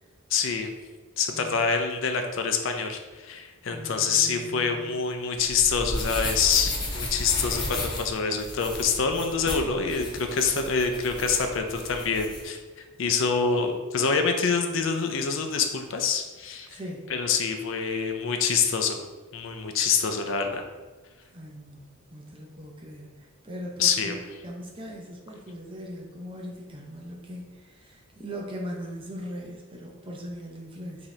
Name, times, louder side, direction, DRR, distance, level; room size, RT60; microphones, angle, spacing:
voice 1, 0.3-0.7 1.2-12.6 13.0-16.8 17.1-19.0 19.3-20.6 23.8-24.2, left 5 dB, 65° left, 5 dB, 0.5 m, -26 dB
voice 2, 3.7-4.9 16.7-17.1 21.3-23.1 23.4-24.2 24.4-31.1, equal, 25° right, -1 dB, 0.6 m, -40 dB
sound 1, 5.3-12.4, left 1 dB, 20° left, 0.6 m, -34 dB
4.8 x 2.8 x 3.2 m, 1.3 s
head